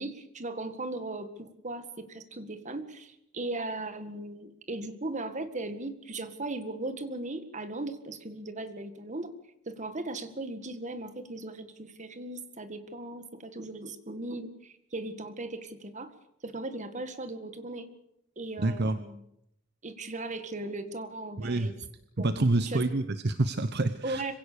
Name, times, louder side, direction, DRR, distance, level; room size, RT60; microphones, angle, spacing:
voice 1, 0.0-9.3 9.7-16.1 16.4-17.9 18.4-19.2 19.8-21.7 22.2-22.3 22.5-22.9 24.0-24.3, right 2 dB, 35° right, 10 dB, 1.8 m, -37 dB
voice 2, 18.6-19.0 21.4-21.7 22.2-24.2, right 2 dB, 55° right, 11 dB, 0.9 m, -27 dB
25.5 x 17.0 x 6.8 m, 0.80 s
head